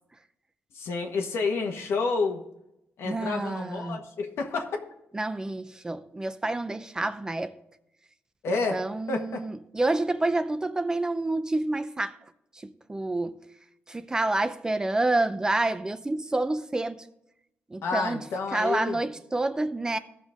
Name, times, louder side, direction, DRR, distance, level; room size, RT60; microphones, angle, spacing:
voice 1, 0.7-2.4 3.0-4.8 8.4-8.8 9.1-9.4 17.8-19.0, left 4 dB, 80° left, 1.5 m, -29 dB
voice 2, 3.0-4.0 5.1-7.5 8.7-12.2 12.5-13.4 13.9-17.0 17.7-18.2 18.5-20.0, right 2 dB, 15° right, 0.5 m, -28 dB
16.0 x 6.2 x 3.6 m
cardioid pair, 135°, 4 cm